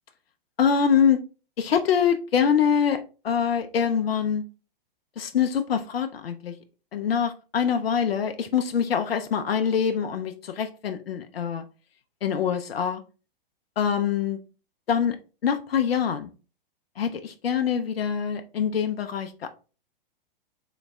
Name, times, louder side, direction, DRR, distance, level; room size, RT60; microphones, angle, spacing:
voice 1, 0.6-1.2 1.6-4.4 5.2-6.5 6.9-11.6 12.2-13.0 13.8-14.4 14.9-15.2 15.4-16.3 17.0-19.5, left 7 dB, 90° left, 7 dB, 0.4 m, -24 dB
3.9 x 2.1 x 3.2 m, 0.34 s
hypercardioid pair, 115°, 29 cm